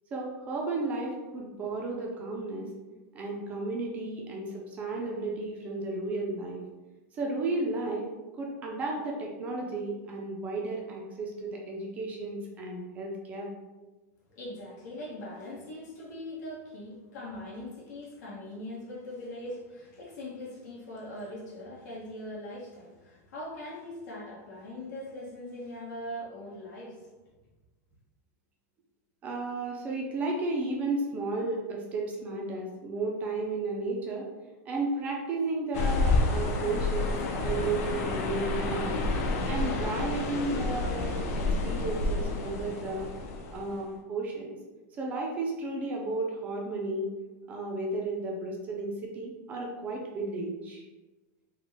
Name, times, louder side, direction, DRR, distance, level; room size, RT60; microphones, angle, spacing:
voice 1, 0.1-2.7 3.1-6.6 7.1-8.1 8.4-13.5 29.2-34.3 34.7-39.0 39.5-43.1 43.5-44.5 45.0-47.1 47.5-50.8, right 2 dB, 15° right, -1 dB, 0.3 m, -33 dB
voice 2, 14.3-27.1, left 1 dB, 85° left, -5 dB, 1.1 m, -41 dB
sound 1, 35.7-43.9, left 2 dB, 55° left, 0.5 m, -29 dB
3.8 x 2.1 x 3.3 m, 1.1 s
supercardioid pair, 180°, 9 cm